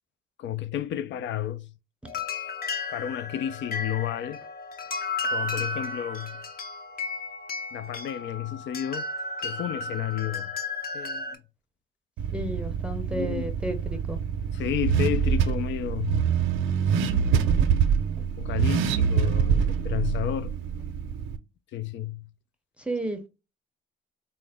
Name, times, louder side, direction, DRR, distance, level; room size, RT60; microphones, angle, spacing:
voice 1, 0.4-1.7 2.9-4.4 5.3-6.4 7.7-9.1 9.4-10.5 10.9-11.4 13.1-13.5 14.5-16.3 18.4-20.5 21.7-22.2, left 11 dB, 70° left, 0.4 m, -31 dB
sound 1, 2.1-11.4, left 3 dB, 50° left, 0.8 m, -34 dB
Car / Accelerating revving vroom, 12.2-21.4, right 7 dB, 85° right, 0.6 m, -25 dB
voice 2, 12.3-14.2 22.8-23.3, right 1 dB, 5° right, 0.6 m, -32 dB
4.3 x 2.1 x 3.4 m
cardioid pair, 90°, 20 cm